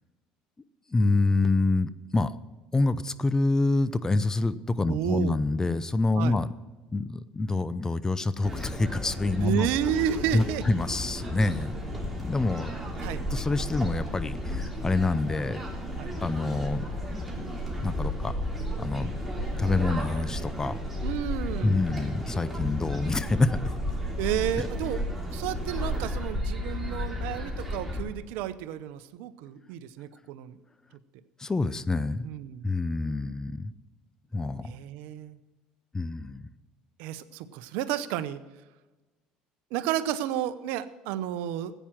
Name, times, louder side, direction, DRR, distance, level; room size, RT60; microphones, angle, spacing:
voice 1, 0.9-2.4 2.7-6.5 6.9-9.7 10.3-11.7 12.2-12.8 13.3-15.6 16.2-16.8 17.1-17.2 17.8-18.3 18.8-19.1 19.5-20.8 21.6-23.6 31.4-32.3 32.6-33.7 34.3-34.8 35.9-36.5, left 3 dB, 20° left, 15 dB, 0.6 m, -26 dB
voice 2, 4.9-5.4 6.1-6.4 9.4-10.7 13.0-13.2 16.0-16.1 19.6-19.9 21.0-21.9 24.2-25.0 25.3-30.6 32.2-32.7 34.6-35.4 37.0-38.4 39.7-41.7, right 11 dB, 75° right, 14 dB, 0.7 m, -31 dB
sound 1, 8.4-28.0, left 1 dB, 5° right, 3.4 m, -33 dB
14.5 x 9.0 x 5.9 m, 1.2 s
supercardioid pair, 90°, 3 cm